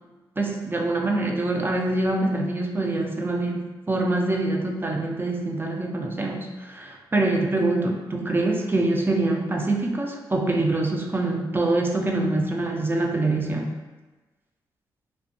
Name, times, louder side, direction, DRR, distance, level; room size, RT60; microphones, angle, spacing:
voice 1, 0.4-13.7, right 2 dB, 25° right, 1 dB, 0.5 m, -25 dB
2.6 x 2.2 x 2.5 m, 1.2 s
supercardioid pair, 50°, 9 cm